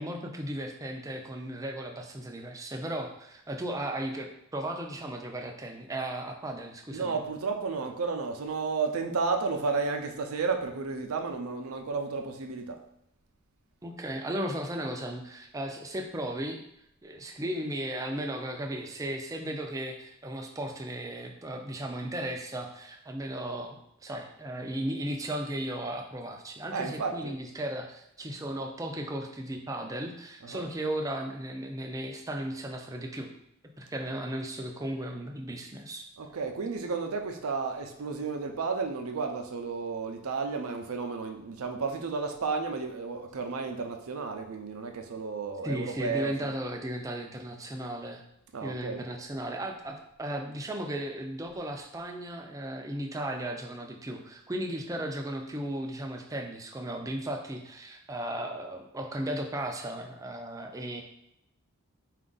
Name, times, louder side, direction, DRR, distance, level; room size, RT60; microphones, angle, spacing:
voice 1, 0.0-7.2 13.8-16.6 17.0-33.3 33.8-36.0 45.6-48.2 48.6-61.0, right 1 dB, 15° right, 3 dB, 0.4 m, -36 dB
voice 2, 6.9-12.8 26.7-27.3 30.4-30.7 36.2-46.5 48.5-49.1, right 4 dB, 85° right, 5 dB, 0.5 m, -32 dB
4.4 x 2.5 x 3.8 m, 0.77 s
head